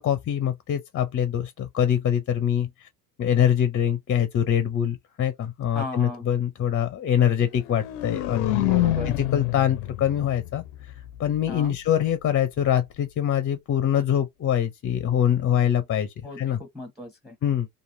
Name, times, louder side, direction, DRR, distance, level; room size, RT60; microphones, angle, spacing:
voice 1, 0.0-2.9 3.2-8.6 9.1-10.6 11.2-16.6 17.4-17.7, left 9 dB, 30° left, 0.6 m, -24 dB
voice 2, 5.7-6.2 8.5-9.1 11.5-11.8 16.2-17.4, left 1 dB, ahead, 0.9 m, -36 dB
sound 1, 7.5-11.5, left 16 dB, 70° left, 0.6 m, -28 dB
3.0 x 2.5 x 2.6 m
hypercardioid pair, 75°, 46 cm